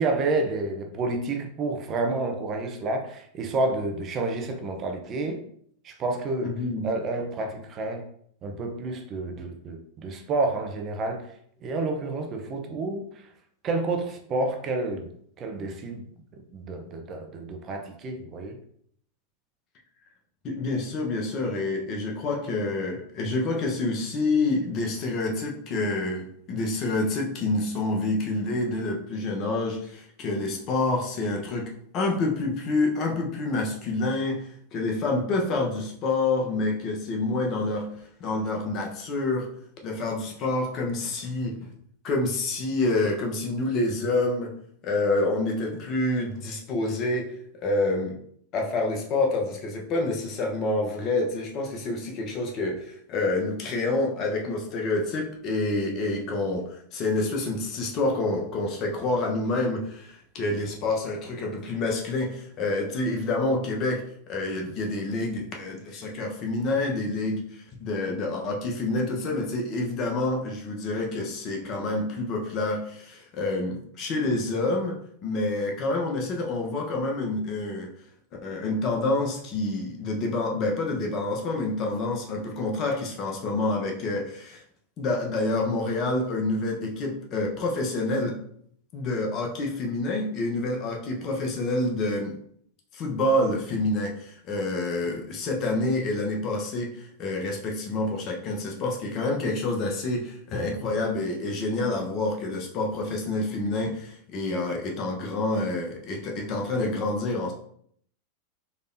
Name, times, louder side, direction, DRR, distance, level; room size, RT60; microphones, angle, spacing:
voice 1, 0.0-5.4 5.8-8.0 8.4-11.3 11.6-13.3 13.6-15.1 15.4-16.0 16.5-18.6, right 2 dB, 35° right, 4 dB, 0.7 m, -29 dB
voice 2, 6.4-6.9 20.4-37.9 38.2-39.5 39.8-41.6 42.0-44.5 44.8-47.3 47.6-48.1 48.5-75.0 75.2-77.9 78.4-84.6 85.0-88.4 88.9-92.4 92.9-107.5, left 2 dB, 40° left, 1 dB, 1.0 m, -28 dB
4.1 x 3.4 x 2.7 m, 0.64 s
hypercardioid pair, 100°, 0 cm